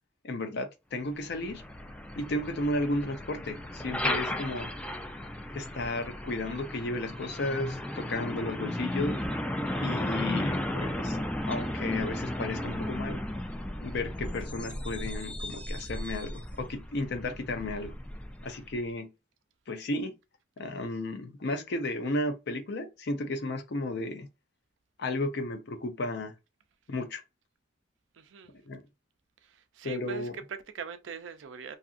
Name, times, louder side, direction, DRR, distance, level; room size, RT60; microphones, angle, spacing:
voice 1, 0.2-1.6 2.2-4.7 5.5-9.2 9.8-11.2 11.5-13.2 13.8-17.9 18.4-19.1 19.7-20.1 20.6-24.3 25.0-26.3 26.9-27.2 28.7-28.8 29.8-30.3, left 2 dB, 60° left, 0.6 m, -33 dB
Truck, 1.1-18.8, left 1 dB, 5° left, 0.3 m, -35 dB
voice 2, 28.1-28.5 29.4-31.8, right 6 dB, 75° right, 0.4 m, -42 dB
2.8 x 2.5 x 2.4 m
head